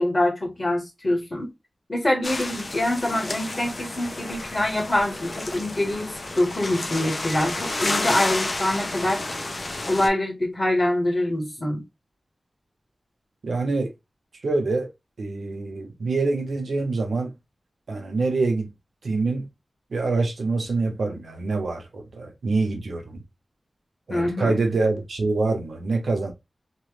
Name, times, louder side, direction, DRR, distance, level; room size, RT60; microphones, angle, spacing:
voice 1, 0.0-1.5 1.9-9.2 9.9-11.8 24.1-24.6, left 1 dB, 30° left, 1.4 m, -25 dB
sound 1, 2.2-10.1, left 2 dB, 45° left, 0.6 m, -31 dB
voice 2, 13.4-13.9 14.4-14.9 15.2-17.3 17.9-18.7 19.0-19.5 19.9-23.2 24.1-26.3, right 3 dB, 85° right, 0.8 m, -25 dB
3.0 x 2.2 x 3.2 m
wide cardioid pair, 95°, 0 cm